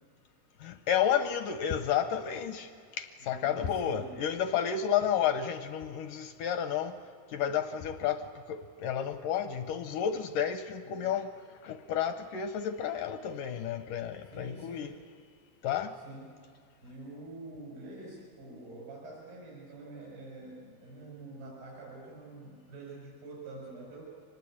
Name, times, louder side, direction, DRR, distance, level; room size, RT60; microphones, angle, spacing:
voice 1, 0.6-7.0 7.3-11.3 11.6-15.0 15.6-15.9, left 9 dB, 80° left, 9 dB, 1.9 m, -31 dB
voice 2, 3.2-4.2 10.8-11.1 14.3-15.0 15.9-16.4 16.8-24.1, right 2 dB, 80° right, -4 dB, 7.0 m, -46 dB
24.5 x 20.0 x 8.6 m, 2.2 s
omnidirectional pair, 4.6 m